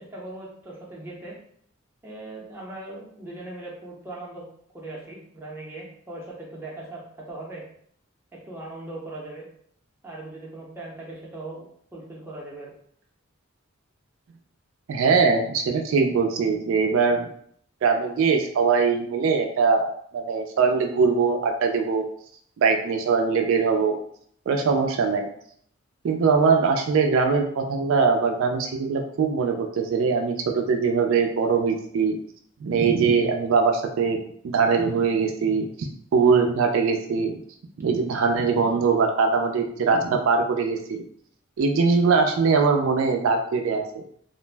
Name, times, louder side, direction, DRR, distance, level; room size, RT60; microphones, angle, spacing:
voice 1, 0.0-1.3 2.0-4.5 4.7-7.6 8.3-9.5 10.0-11.7 11.9-12.7, right 2 dB, 10° right, -4 dB, 0.6 m, -39 dB
voice 2, 14.9-17.3 17.8-22.0 22.6-23.9 24.5-25.3 26.0-32.2 32.6-37.4 37.8-41.0 41.6-44.0, right 5 dB, 70° right, 3 dB, 0.3 m, -22 dB
2.5 x 2.0 x 3.2 m, 0.65 s
head